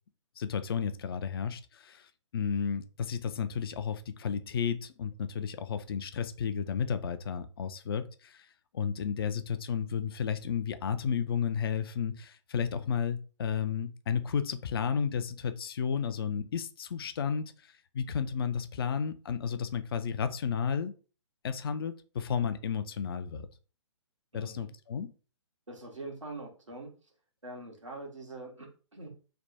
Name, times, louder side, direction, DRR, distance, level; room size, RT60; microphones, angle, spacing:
voice 1, 0.4-8.5 8.7-20.9 21.4-23.5 24.3-25.1, left 7 dB, 50° left, 10 dB, 0.4 m, -32 dB
voice 2, 24.3-24.7 25.7-26.9 27.4-29.1, right 2 dB, 85° right, 0 dB, 1.4 m, -43 dB
3.3 x 2.2 x 4.0 m, 0.36 s
figure-of-eight pair, 125°, 16 cm